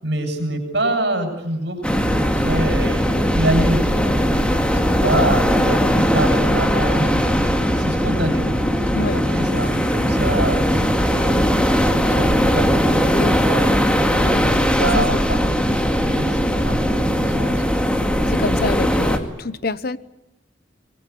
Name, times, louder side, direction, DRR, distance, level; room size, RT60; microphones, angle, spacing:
voice 1, 0.0-4.1 4.5-8.4 8.8-11.5 11.9-13.7 14.4-17.6, right 1 dB, 65° right, 7.6 m, -26 dB
sound 1, 1.8-19.2, equal, 5° left, 2.2 m, -19 dB
voice 2, 8.9-9.2 14.2-15.1 18.3-20.0, left 3 dB, 55° left, 1.0 m, -27 dB
25.5 x 22.0 x 8.4 m
head